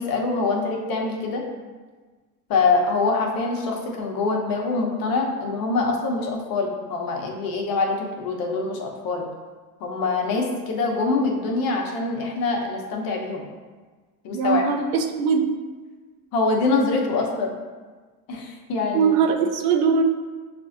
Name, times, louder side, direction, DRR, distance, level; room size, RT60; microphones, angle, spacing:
voice 1, 0.0-1.4 2.5-9.3 9.8-13.4 14.2-14.6 16.3-17.5 18.3-19.1, left 3 dB, 50° left, 0 dB, 0.9 m, -24 dB
voice 2, 14.3-15.5 18.9-20.0, right 6 dB, 80° right, 3 dB, 0.7 m, -21 dB
6.5 x 2.5 x 2.5 m, 1.4 s
hypercardioid pair, 85°, 45 cm